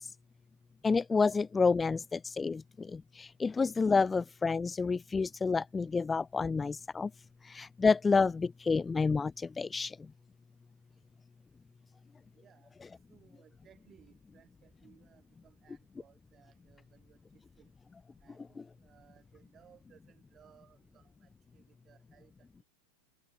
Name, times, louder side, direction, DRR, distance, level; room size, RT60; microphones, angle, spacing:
voice 1, 0.8-7.1 7.5-10.0, left 4 dB, 15° left, 0.4 m, -29 dB
voice 2, 12.3-12.7 13.1-17.2 17.6-17.7 18.2-22.6, right 9 dB, 25° right, 7.9 m, -63 dB
figure-of-eight pair, 90°, 0 cm